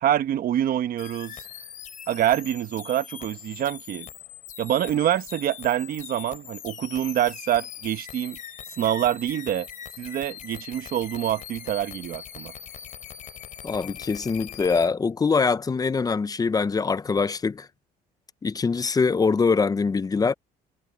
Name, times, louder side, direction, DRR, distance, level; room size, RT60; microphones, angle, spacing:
voice 1, 0.0-1.5 2.1-4.1 4.6-8.4 8.8-9.7 10.0-12.5, right 11 dB, 60° right, 1.2 m, -26 dB
sound 1, 1.0-14.9, left 9 dB, 50° left, 3.2 m, -41 dB
voice 2, 13.6-17.7 18.4-20.3, left 4 dB, 20° left, 0.7 m, -23 dB
cardioid pair, 110°, 17 cm